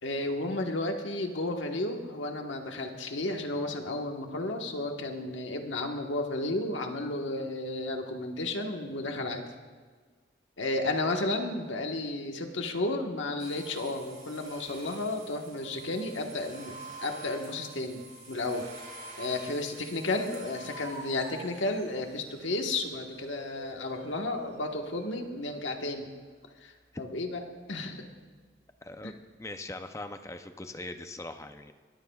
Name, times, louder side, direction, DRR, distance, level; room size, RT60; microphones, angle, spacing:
voice 1, 0.0-9.4 10.6-18.7 19.2-26.1 26.6-27.4 27.7-28.0 29.0-29.2, left 2 dB, 85° left, 3 dB, 1.4 m, -33 dB
sound 1, 13.4-25.1, right 2 dB, 40° right, 3.2 m, -48 dB
voice 2, 28.8-29.1 29.4-31.7, left 2 dB, 15° left, 7 dB, 0.5 m, -41 dB
21.5 x 14.5 x 2.4 m, 1.5 s
head